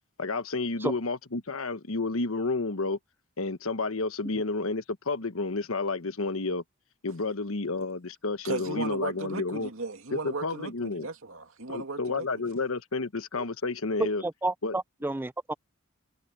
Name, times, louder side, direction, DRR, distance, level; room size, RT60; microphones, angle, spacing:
voice 1, 0.2-3.0 3.4-6.6 7.0-9.7 10.1-11.1 11.7-14.2 14.6-14.7, left 3 dB, 80° left, 1.2 m, -30 dB
voice 2, 8.4-12.3, right 3 dB, 75° right, 2.5 m, -36 dB
voice 3, 14.0-15.5, right 2 dB, 10° right, 0.4 m, -31 dB
head